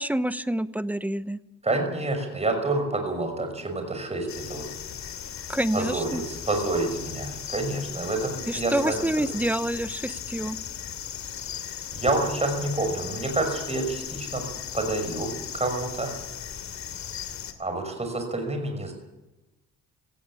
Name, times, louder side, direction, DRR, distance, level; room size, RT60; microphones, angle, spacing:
voice 1, 0.0-1.4 5.5-6.2 8.5-10.6, right 1 dB, 5° right, 14 dB, 0.9 m, -27 dB
voice 2, 1.6-4.7 5.7-9.0 11.6-11.7 11.9-14.4 14.7-16.1 17.6-18.9, right 2 dB, 20° right, 4 dB, 6.0 m, -28 dB
sound 1, 4.3-17.5, left 9 dB, 65° left, 2.6 m, -37 dB
17.5 x 15.5 x 9.9 m, 1.0 s
cardioid pair, 90°, 30 cm